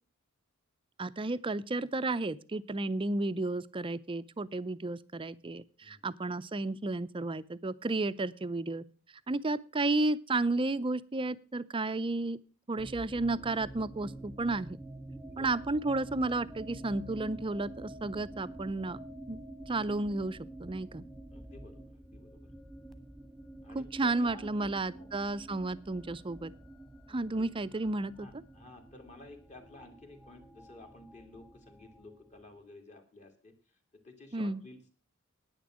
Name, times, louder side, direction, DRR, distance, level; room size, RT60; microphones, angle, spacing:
voice 1, 1.0-8.8 9.3-12.4 12.7-14.8 15.4-19.0 19.3-21.0 23.7-26.5 27.1-28.4 34.3-34.6, right 2 dB, 25° right, 15 dB, 0.5 m, -32 dB
sound 1, 12.8-32.6, right 1 dB, ahead, 1.3 m, -48 dB
voice 2, 21.3-22.4 23.6-25.1 27.1-27.5 28.2-33.5 34.0-35.0, left 2 dB, 35° left, 4 dB, 2.5 m, -53 dB
10.5 x 9.6 x 6.2 m, 0.37 s
head